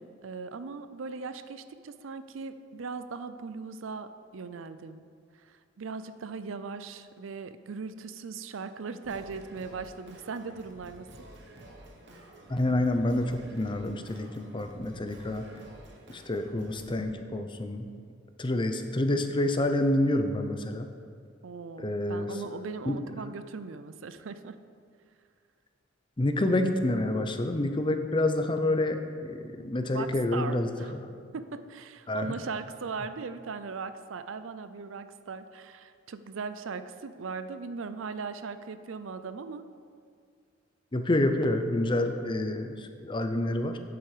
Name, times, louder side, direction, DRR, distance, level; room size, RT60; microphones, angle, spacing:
voice 1, 0.0-5.0 5.5-11.1 21.4-24.6 29.9-30.9 31.3-39.7, right 4 dB, 80° right, 11 dB, 0.5 m, -39 dB
Singing, 9.0-17.0, right 1 dB, 60° right, 1.2 m, -50 dB
voice 2, 12.5-15.5 16.1-17.9 18.4-20.9 21.8-22.3 22.8-23.0 26.2-30.7 32.1-32.3 40.9-43.8, left 1 dB, 25° left, 7 dB, 0.6 m, -28 dB
9.3 x 8.0 x 4.9 m, 2.2 s
head